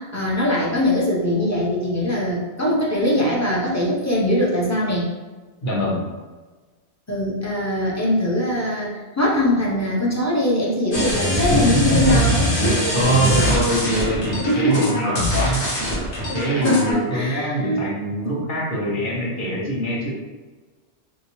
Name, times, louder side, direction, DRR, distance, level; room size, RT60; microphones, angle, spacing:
voice 1, 0.0-5.1 7.1-12.5 12.8-12.9 13.9-14.2 14.4-15.0 15.4-15.6 16.6-17.9, left 1 dB, 20° left, -5 dB, 0.5 m, -22 dB
voice 2, 5.6-6.1 11.5-15.7 16.3-20.1, right 1 dB, 50° left, -5 dB, 0.9 m, -23 dB
sound 1, 10.9-16.9, equal, 75° left, 1.3 m, -23 dB
3.2 x 2.7 x 3.0 m, 1.3 s
omnidirectional pair, 1.2 m